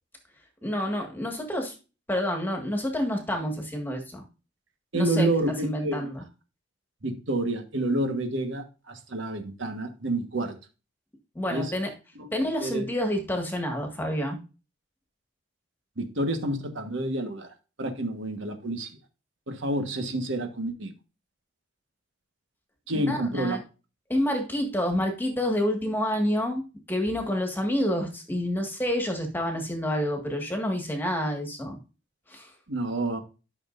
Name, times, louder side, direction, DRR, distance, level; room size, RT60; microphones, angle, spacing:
voice 1, 0.6-1.7 2.1-4.2 4.9-5.3 5.6-6.2 11.4-11.9 12.3-14.4 22.9-23.6 24.1-31.8 32.3-32.5, equal, 10° left, 1.8 m, -28 dB
voice 2, 4.9-6.1 7.0-10.5 11.5-11.7 12.2-12.3 12.6-12.9 16.0-17.5 17.8-18.9 19.5-20.9 22.9-23.6 32.7-33.2, right 1 dB, 70° right, 1.5 m, -29 dB
12.5 x 6.2 x 2.6 m
head